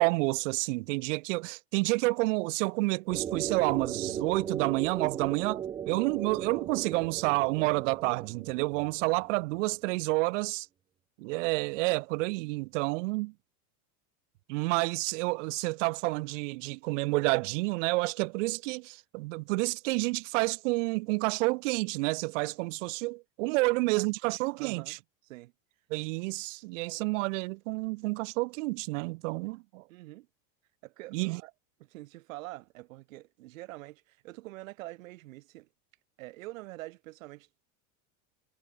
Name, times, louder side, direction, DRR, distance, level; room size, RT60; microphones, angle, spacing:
voice 1, 0.0-10.7 11.2-13.3 14.5-25.0 25.9-29.8 31.1-31.4, right 25 dB, 70° right, 0.8 m, -29 dB
sound 1, 3.1-9.6, right 9 dB, 10° right, 0.4 m, -37 dB
voice 2, 24.6-25.0 25.2-25.5 29.9-30.3 30.8-31.5 31.8-35.7 36.2-37.6, right 19 dB, 90° right, 6.0 m, -45 dB
cardioid pair, 175°, 39 cm